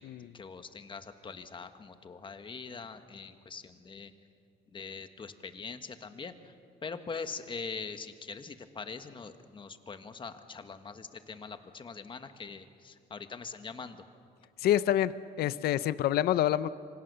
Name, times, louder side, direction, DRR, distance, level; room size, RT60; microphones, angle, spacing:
voice 1, 0.3-4.1 4.7-6.4 6.8-14.0, left 5 dB, 30° left, 9 dB, 1.5 m, -42 dB
voice 2, 14.6-16.7, left 12 dB, 70° left, 15 dB, 0.7 m, -27 dB
27.0 x 24.5 x 6.9 m, 2.3 s
cardioid pair, 110°, 17 cm